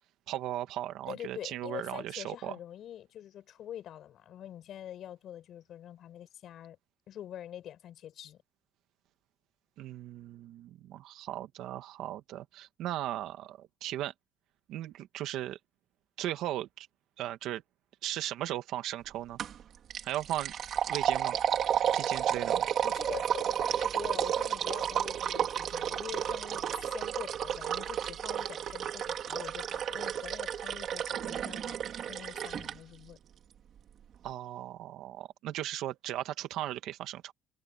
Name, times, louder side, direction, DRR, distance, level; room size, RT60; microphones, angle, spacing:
voice 1, 0.3-2.6 9.8-14.1 14.7-15.6 16.2-16.9 17.2-17.6 18.0-19.4 20.0-20.5 20.9-21.4 21.9-22.7 34.2-37.3, right 13 dB, 60° right, 1.9 m, -37 dB
voice 2, 1.1-6.8 7.1-8.4 22.8-33.2, left 11 dB, 45° left, 6.5 m, -45 dB
sound 1, 19.4-19.6 19.9-32.7, right 9 dB, 40° right, 2.9 m, -32 dB
cardioid pair, 165°, 0 cm